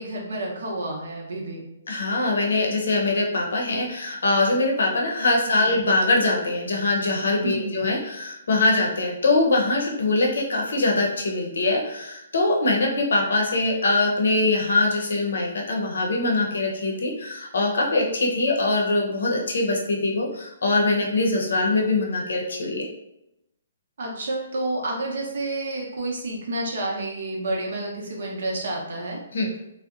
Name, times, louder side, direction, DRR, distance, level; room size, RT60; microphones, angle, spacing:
voice 1, 0.0-1.7 5.5-5.8 7.4-7.8 24.0-29.2, right 2 dB, 60° right, -1 dB, 0.7 m, -30 dB
voice 2, 1.9-22.8 29.3-29.5, left 2 dB, 75° left, 0 dB, 0.6 m, -23 dB
2.6 x 2.1 x 2.4 m, 0.86 s
hypercardioid pair, 170°, 0 cm